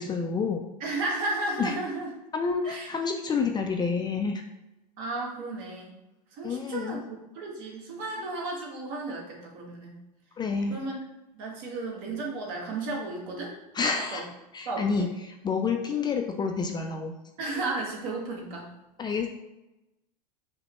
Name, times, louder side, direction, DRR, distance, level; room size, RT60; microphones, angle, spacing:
voice 1, 0.0-0.6 1.6-1.7 2.3-4.4 6.4-7.0 10.4-10.8 13.7-14.3 14.5-15.1 15.4-17.1 19.0-19.3, left 5 dB, 20° left, 4 dB, 0.4 m, -28 dB
voice 2, 0.8-2.1 2.6-2.9 5.0-5.9 6.3-10.0 10.7-11.0 11.3-13.5 14.1-14.2 14.6-15.1 16.0-16.1 17.4-18.7, right 2 dB, 55° right, -2 dB, 1.4 m, -34 dB
5.3 x 2.1 x 3.0 m, 0.95 s
hypercardioid pair, 95°, 21 cm